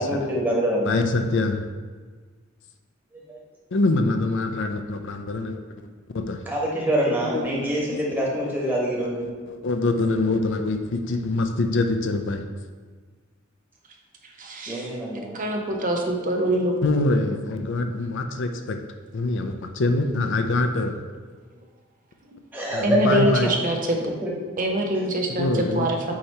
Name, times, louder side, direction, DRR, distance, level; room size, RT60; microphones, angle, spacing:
voice 1, 0.0-1.0 3.3-3.4 6.5-9.3 14.7-15.3 22.5-23.2 23.4-23.5 24.0-24.3, right 1 dB, 10° right, -4 dB, 1.4 m, -25 dB
voice 2, 0.8-1.7 3.7-5.6 6.1-6.4 7.3-8.2 8.6-8.7 9.2-12.4 16.8-18.8 19.1-20.9 22.7-23.5 25.3-25.9, left 2 dB, 65° left, 6 dB, 0.5 m, -24 dB
voice 3, 14.2-14.9 15.3-16.8 22.8-24.0 24.6-26.1, right 1 dB, 40° right, 2 dB, 0.6 m, -24 dB
8.5 x 3.0 x 4.3 m, 1.5 s
head